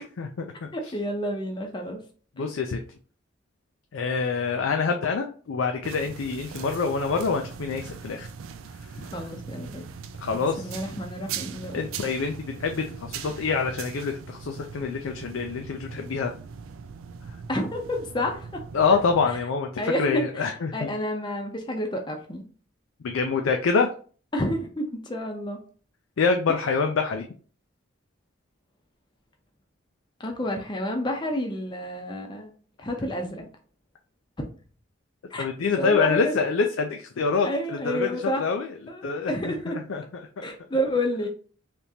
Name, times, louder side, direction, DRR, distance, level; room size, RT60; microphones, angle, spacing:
voice 1, 0.2-0.7 2.4-2.8 3.9-8.3 10.2-10.8 11.7-16.3 18.7-20.9 23.0-23.9 26.2-27.3 35.4-38.1 38.4-38.7 39.0-39.5 39.9-40.0 40.4-40.5, left 5 dB, 75° left, 4 dB, 0.4 m, -26 dB
voice 2, 0.7-2.0 2.4-2.5 9.0-9.8 10.3-11.7 17.5-18.6 19.8-20.4 20.7-22.4 24.3-25.6 30.2-32.5 32.8-33.5 35.3-35.4 35.8-36.3 37.4-38.4 38.9-39.0 39.3-39.8 40.4-41.3, left 1 dB, 20° left, 3 dB, 0.6 m, -29 dB
sound 1, 5.8-19.4, right 6 dB, 80° right, 0.4 m, -40 dB
3.5 x 2.9 x 2.7 m, 0.40 s
head